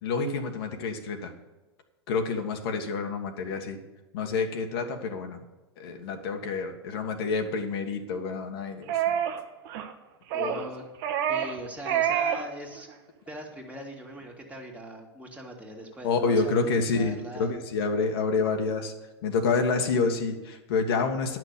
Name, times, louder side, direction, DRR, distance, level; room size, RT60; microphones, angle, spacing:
voice 1, 0.0-1.3 2.1-3.8 4.1-5.4 5.8-9.1 10.4-10.7 16.0-18.9 19.2-21.4, left 4 dB, 65° left, 4 dB, 1.6 m, -28 dB
Dog Whining, 8.9-9.4 9.7-9.9 10.3-10.7 11.0-11.6 11.9-12.5 12.8-12.9, right 9 dB, 55° right, 1.2 m, -27 dB
voice 2, 10.3-10.8 11.3-12.9 13.3-17.5, right 1 dB, 10° right, 0 dB, 2.2 m, -41 dB
10.5 x 6.2 x 8.0 m, 1.1 s
hypercardioid pair, 110°, 14 cm